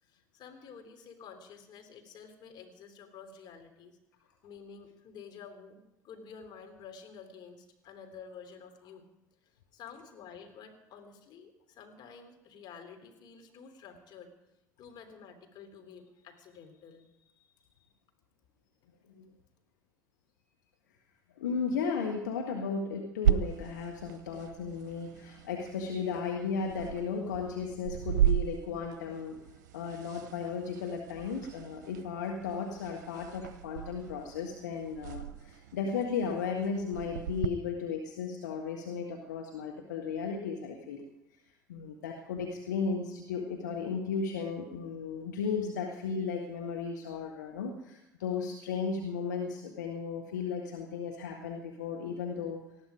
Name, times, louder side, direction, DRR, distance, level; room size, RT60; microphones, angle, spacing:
voice 1, 0.0-4.0 4.4-9.1 9.4-14.3 14.8-17.6, left 6 dB, 50° left, 5 dB, 3.2 m, -50 dB
voice 2, 21.4-29.4 29.7-41.0 41.7-52.6, left 5 dB, 75° left, 1 dB, 1.6 m, -35 dB
sound 1, 23.2-37.5, right 11 dB, 70° right, 0.8 m, -35 dB
19.5 x 14.5 x 5.0 m, 0.89 s
figure-of-eight pair, 65°, 10 cm